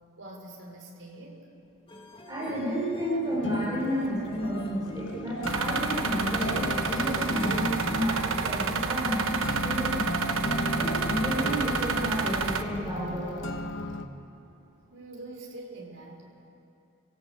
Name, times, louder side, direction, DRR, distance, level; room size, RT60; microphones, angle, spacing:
voice 1, 0.2-1.5 14.9-16.3, right 2 dB, 70° right, 0 dB, 4.8 m, -44 dB
sound 1, 1.9-8.0, equal, 25° left, 1.7 m, -45 dB
voice 2, 2.3-10.2 10.7-13.4, equal, 20° right, -6 dB, 4.9 m, -31 dB
sound 2, 3.3-14.1, left 1 dB, 60° left, 1.4 m, -36 dB
sound 3, 5.5-12.6, right 4 dB, 85° right, 1.1 m, -29 dB
28.5 x 16.5 x 8.7 m, 2.7 s
head